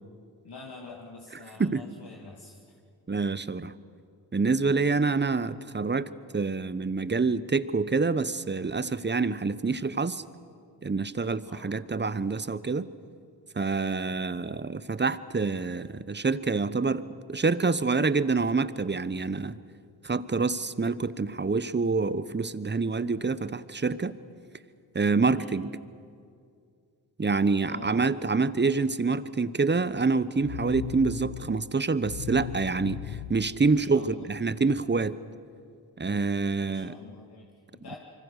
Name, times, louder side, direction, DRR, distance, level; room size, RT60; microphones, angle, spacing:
voice 1, 0.4-2.8 11.5-11.7 25.3-25.6 27.4-28.1 33.7-34.3 36.6-38.0, left 3 dB, 55° left, -1 dB, 2.7 m, -46 dB
voice 2, 3.1-3.7 4.3-10.2 10.8-12.9 13.5-19.6 20.0-24.2 24.9-25.7 27.2-35.2 36.0-36.9, right 4 dB, 25° right, 15 dB, 1.0 m, -27 dB
sound 1, 30.4-34.4, left 13 dB, 80° left, 0.8 m, -39 dB
25.5 x 24.5 x 6.6 m, 2.3 s
supercardioid pair, 50°, 47 cm